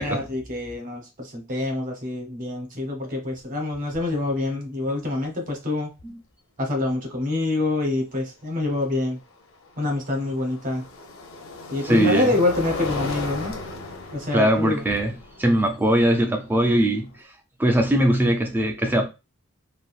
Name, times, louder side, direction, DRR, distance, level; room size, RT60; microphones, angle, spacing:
voice 1, 0.0-5.9 6.6-9.2 9.8-10.8 11.7-13.5 14.1-14.8, left 2 dB, 35° right, 0.9 m, -26 dB
sound 1, 3.3-3.4 3.7-4.2 6.0-6.1 9.1-17.2, left 3 dB, 65° left, 0.6 m, -36 dB
voice 2, 11.8-12.3 14.3-15.1 15.4-17.1 17.6-19.1, right 1 dB, 10° right, 0.3 m, -20 dB
3.5 x 2.3 x 2.4 m
head